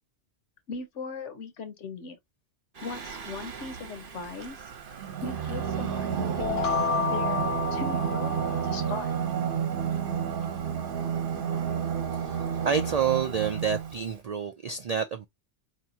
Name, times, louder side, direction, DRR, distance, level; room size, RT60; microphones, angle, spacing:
voice 1, 0.7-2.2 2.8-4.7 5.2-6.6 7.1-9.1, left 4 dB, 85° left, 1.2 m, -39 dB
Singing, 2.8-14.1, right 8 dB, 50° right, 0.9 m, -31 dB
sound 1, 6.4-9.2, left 7 dB, 60° left, 0.3 m, -30 dB
voice 2, 12.7-15.3, right 7 dB, 70° right, 0.3 m, -28 dB
4.5 x 2.8 x 2.7 m
omnidirectional pair, 1.2 m